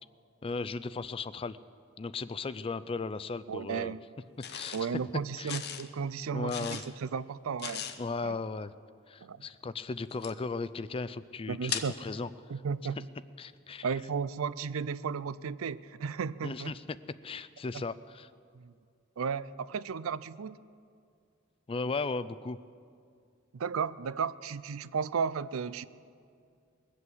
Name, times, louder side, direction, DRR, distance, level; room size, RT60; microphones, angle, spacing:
voice 1, 0.4-1.6 2.0-4.0 4.5-4.9 5.4-5.6 6.3-6.8 8.0-8.7 9.1-12.3 13.4-13.9 16.4-17.0 17.2-18.3 21.7-22.6, left 4 dB, 25° left, 16 dB, 0.4 m, -36 dB
voice 2, 3.5-4.0 4.7-7.8 8.2-8.4 9.2-9.4 11.5-12.0 12.5-13.1 13.8-16.7 17.7-17.8 18.5-18.7 19.2-20.6 23.5-25.8, right 6 dB, 85° right, 17 dB, 0.4 m, -34 dB
sound 1, 4.4-4.8 5.5-5.9 6.5-6.9 7.6-8.0 10.1-10.3 11.7-11.9, left 8 dB, 50° left, 0.8 m, -37 dB
21.0 x 8.4 x 7.8 m, 2.3 s
head